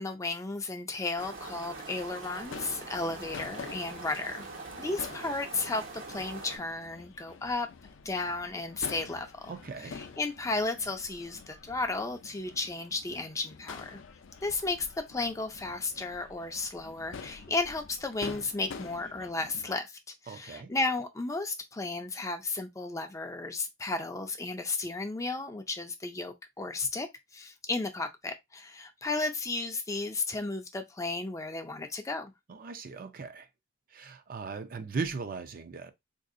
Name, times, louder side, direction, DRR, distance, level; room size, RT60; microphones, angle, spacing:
voice 1, 0.0-4.5 4.8-7.7 8.0-9.5 9.8-14.0 14.4-20.0 20.2-27.1 27.3-32.3, left 3 dB, 15° left, 0.4 m, -34 dB
sound 1, 1.2-6.6, right 3 dB, 80° right, 1.3 m, -43 dB
Crowd / Fireworks, 2.4-19.7, left 5 dB, 70° left, 0.5 m, -47 dB
voice 2, 9.5-10.0 20.3-20.7 32.5-33.5 33.9-35.9, right 4 dB, 45° right, 0.4 m, -38 dB
3.9 x 2.7 x 2.4 m
head